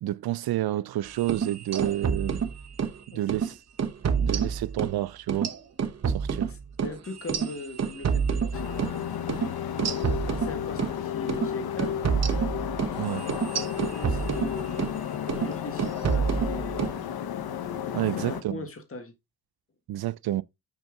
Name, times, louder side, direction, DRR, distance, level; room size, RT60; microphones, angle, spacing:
voice 1, 0.0-2.4 3.1-3.6 4.2-5.5 6.1-6.5 13.0-13.3 17.9-18.6 19.9-20.4, right 14 dB, 80° right, 0.5 m, -29 dB
sound 1, 1.2-3.0 3.3-3.5 3.8-5.0 5.3-9.0 9.3-9.5 9.8-11.0 11.3-11.5 11.8-15.0 15.3-15.5 15.8-17.0, right 6 dB, 45° right, 0.9 m, -28 dB
voice 2, 6.5-8.6 9.9-12.0 13.4-14.9 15.3-16.9 18.2-19.1, left 3 dB, 35° left, 1.7 m, -40 dB
sound 2, 8.5-18.4, left 9 dB, 80° left, 0.8 m, -33 dB
6.1 x 5.3 x 3.7 m
cardioid pair, 105°, 37 cm